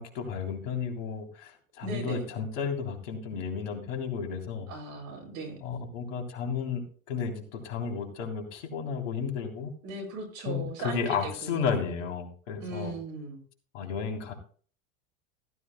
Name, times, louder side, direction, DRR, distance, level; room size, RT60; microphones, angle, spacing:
voice 1, 0.0-4.7 5.6-9.7 10.5-13.0 13.7-14.3, left 6 dB, 70° left, 3 dB, 3.6 m, -33 dB
voice 2, 1.8-2.3 4.7-5.6 9.8-11.8 12.6-13.4, right 3 dB, 60° right, 4 dB, 7.4 m, -38 dB
15.5 x 15.0 x 2.2 m, 0.43 s
hypercardioid pair, 90°, 39 cm